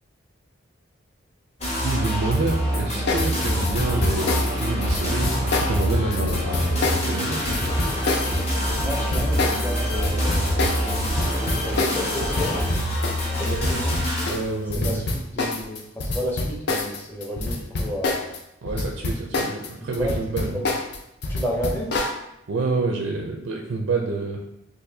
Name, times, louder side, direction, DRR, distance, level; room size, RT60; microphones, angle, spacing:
sound 1, 1.6-14.3, equal, 35° left, 0.8 m, -25 dB
voice 1, 1.8-7.4 13.3-13.8 14.2-15.1 18.6-20.6 22.5-24.4, right 3 dB, 85° right, 1 dB, 0.4 m, -28 dB
sound 2, 2.5-13.0 13.3-13.5, left 2 dB, 80° left, 0.9 m, -36 dB
sound 3, 3.1-18.4 18.7-22.2, left 2 dB, 55° left, 0.4 m, -27 dB
voice 2, 8.8-10.8 11.6-12.7 13.4-14.0 14.7-18.3 20.0-20.1 20.5-20.6 21.3-22.0, equal, 10° left, -4 dB, 0.6 m, -31 dB
4.0 x 2.5 x 2.7 m, 0.84 s
head